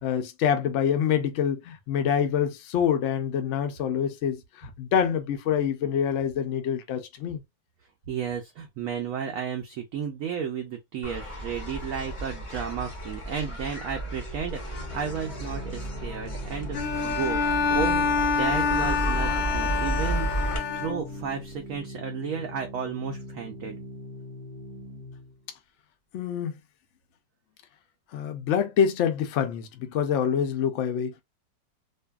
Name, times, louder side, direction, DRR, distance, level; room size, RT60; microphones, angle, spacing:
voice 1, 0.0-7.4 26.1-26.5 28.1-31.2, left 8 dB, 85° left, 0.6 m, -26 dB
voice 2, 8.1-17.4 17.7-20.3 20.7-23.8, right 7 dB, 75° right, 0.7 m, -33 dB
sound 1, 11.0-20.6, right 1 dB, 35° left, 0.4 m, -33 dB
Organ, 14.7-25.4, left 1 dB, 25° right, 0.8 m, -42 dB
Bowed string instrument, 16.7-21.3, left 5 dB, 60° left, 1.0 m, -27 dB
2.6 x 2.6 x 2.2 m
omnidirectional pair, 1.9 m